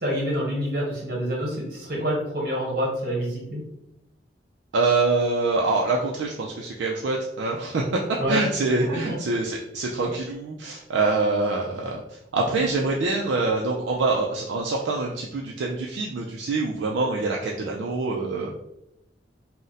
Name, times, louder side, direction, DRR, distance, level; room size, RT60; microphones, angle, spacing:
voice 1, 0.0-3.6 8.2-8.5 8.9-9.2 12.5-12.6, equal, 55° right, -3 dB, 1.2 m, -27 dB
voice 2, 4.7-7.8 8.3-12.0 12.3-18.6, right 3 dB, 80° right, -2 dB, 0.4 m, -25 dB
2.5 x 2.1 x 3.9 m, 0.81 s
head